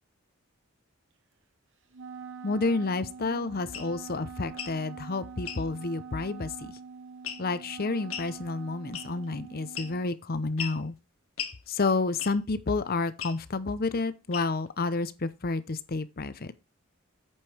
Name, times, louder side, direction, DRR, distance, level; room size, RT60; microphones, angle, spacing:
Wind instrument woodwind instrument, 1.9-10.1, right 6 dB, 60° right, 1.3 m, -44 dB
voice 1, 2.4-6.8 7.4-10.9 11.7-16.5, left 3 dB, 45° left, 0.7 m, -30 dB
sound 1, 3.7-3.9 4.5-4.8 5.4-5.6 7.2-7.6 8.1-8.3 8.9-9.3 9.7-10.1 10.6-10.8 11.4-11.6 12.2-12.5 13.2-13.4 14.3-14.7, left 8 dB, 75° left, 1.9 m, -37 dB
8.7 x 5.3 x 4.4 m
head